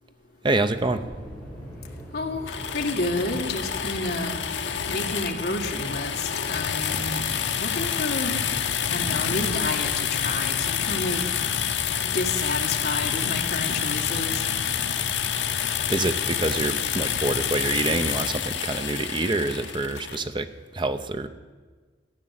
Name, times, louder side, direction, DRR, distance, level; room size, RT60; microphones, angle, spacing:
voice 1, 0.4-1.0 15.9-21.3, right 2 dB, 25° right, 9 dB, 0.7 m, -26 dB
sound 1, 0.6-18.1, equal, 5° left, 5.3 m, -41 dB
voice 2, 2.1-4.4 4.9-7.2 7.6-8.3 8.9-11.2 12.1-14.4, left 2 dB, 55° left, 2 dB, 1.8 m, -30 dB
sound 2, 2.5-20.2, left 8 dB, 70° left, 0.9 m, -28 dB
15.0 x 9.1 x 7.6 m, 1.4 s
head